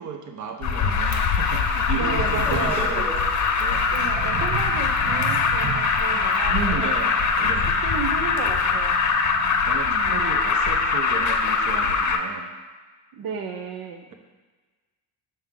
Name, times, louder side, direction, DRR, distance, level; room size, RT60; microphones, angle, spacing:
voice 1, 0.0-3.2 3.6-4.1 6.5-7.2 7.4-7.8 9.6-12.5, right 6 dB, 55° right, 4 dB, 0.8 m, -33 dB
Alarm, 0.6-12.2, left 5 dB, 50° left, 0.7 m, -22 dB
voice 2, 1.9-3.0 3.9-7.0 7.4-7.5 7.8-9.0 9.8-10.2 13.1-14.1, right 6 dB, 80° right, 3 dB, 0.7 m, -33 dB
sound 1, 2.1-5.3 5.7-5.8 7.4-7.7, right 1 dB, 5° right, 1.0 m, -37 dB
sound 2, 3.7-9.8, right 6 dB, 25° right, 0.5 m, -36 dB
6.8 x 5.6 x 3.7 m, 1.3 s
cardioid pair, 125°, 36 cm